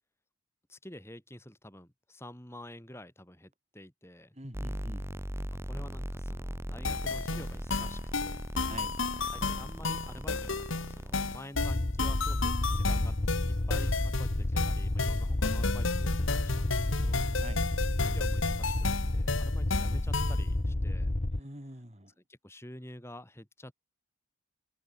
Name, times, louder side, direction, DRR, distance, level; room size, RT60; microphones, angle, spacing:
voice 1, 0.7-4.4 5.5-8.4 9.3-17.2 18.0-21.1 22.3-23.7, left 1 dB, 10° left, 4.1 m, -49 dB
voice 2, 4.3-5.1 8.6-9.0 17.3-17.7 21.3-22.1, right 1 dB, 30° right, 4.6 m, -45 dB
sound 1, 4.5-11.4, equal, 10° right, 6.1 m, -39 dB
sound 2, 6.8-20.5, left 4 dB, 70° left, 1.5 m, -33 dB
sound 3, 11.5-21.4, left 1 dB, 35° left, 0.9 m, -30 dB
open air
head